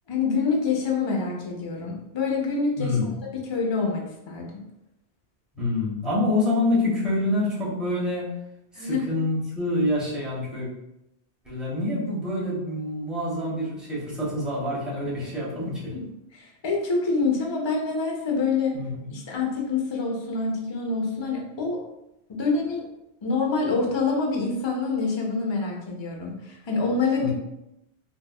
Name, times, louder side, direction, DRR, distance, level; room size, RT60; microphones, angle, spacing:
voice 1, 0.1-3.0 3.3-4.5 8.8-9.1 15.9-18.8 19.1-21.8 22.3-22.9 23.2-27.3, left 4 dB, 30° left, -1 dB, 0.5 m, -26 dB
voice 2, 2.8-3.1 5.5-8.3 8.7-10.7 11.4-15.9 18.7-19.1 27.2-27.3, left 2 dB, ahead, -7 dB, 1.0 m, -26 dB
4.4 x 2.3 x 2.3 m, 0.87 s
omnidirectional pair, 1.2 m